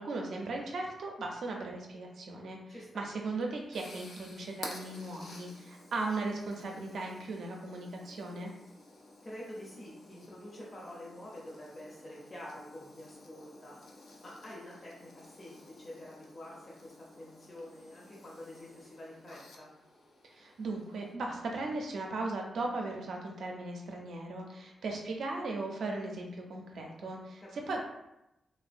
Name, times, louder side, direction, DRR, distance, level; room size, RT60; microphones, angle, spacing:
voice 1, 0.0-2.6 2.9-8.5 20.3-27.8, right 2 dB, 80° right, 1 dB, 0.5 m, -37 dB
voice 2, 2.7-3.0 9.2-13.8 14.2-19.7 27.4-27.7, left 1 dB, 35° left, -6 dB, 0.8 m, -47 dB
sound 1, 3.1-21.1, left 2 dB, 70° left, 0.5 m, -53 dB
3.1 x 2.1 x 2.5 m, 0.88 s
cardioid pair, 75°, 0 cm